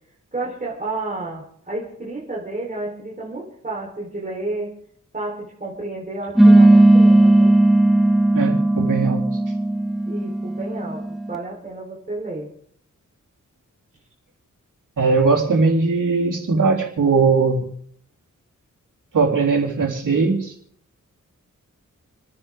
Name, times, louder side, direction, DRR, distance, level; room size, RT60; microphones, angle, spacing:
voice 1, 0.3-4.7 5.1-7.5 10.1-11.0 11.3-12.5, right 2 dB, 25° right, -4 dB, 3.9 m, -31 dB
sound 1, 6.4-11.3, right 1 dB, ahead, 1.0 m, -15 dB
voice 2, 8.3-9.3 15.0-17.7 19.1-20.5, right 4 dB, 75° right, -1 dB, 3.8 m, -19 dB
29.5 x 10.0 x 3.7 m, 0.64 s
wide cardioid pair, 115°, 32 cm